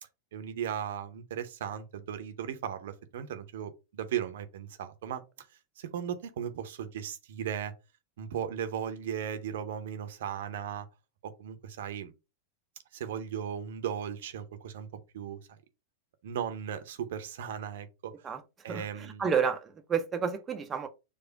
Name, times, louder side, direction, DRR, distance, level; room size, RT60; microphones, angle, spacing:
voice 1, 0.3-5.2 5.8-7.7 8.2-10.9 11.2-12.1 12.9-14.9 15.1-15.6 16.2-18.1 18.6-19.3, right 9 dB, 55° right, 0.7 m, -36 dB
voice 2, 18.7-20.9, right 6 dB, 20° right, 0.5 m, -30 dB
4.8 x 2.4 x 4.6 m
figure-of-eight pair, 90°, 0 cm